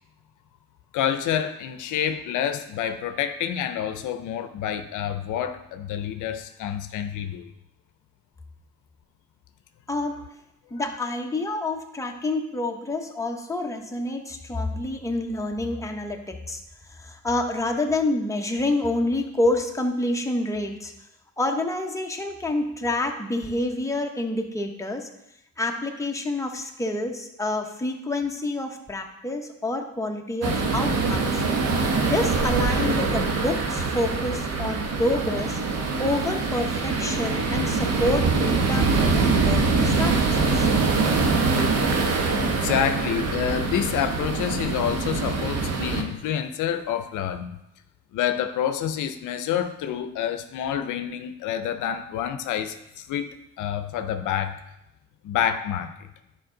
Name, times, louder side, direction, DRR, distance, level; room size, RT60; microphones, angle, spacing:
voice 1, 0.9-7.5 42.6-47.5 48.1-54.6 55.2-55.9, left 9 dB, 85° left, 10 dB, 0.6 m, -28 dB
voice 2, 9.9-10.2 10.7-16.6 16.9-20.9 21.4-25.1 25.6-31.4 32.0-35.6 36.0-40.7, left 2 dB, 10° left, 2 dB, 1.0 m, -28 dB
sound 1, 30.4-46.0, right 4 dB, 55° right, 1.2 m, -24 dB
9.6 x 5.0 x 3.8 m, 0.86 s
cardioid pair, 90°, 30 cm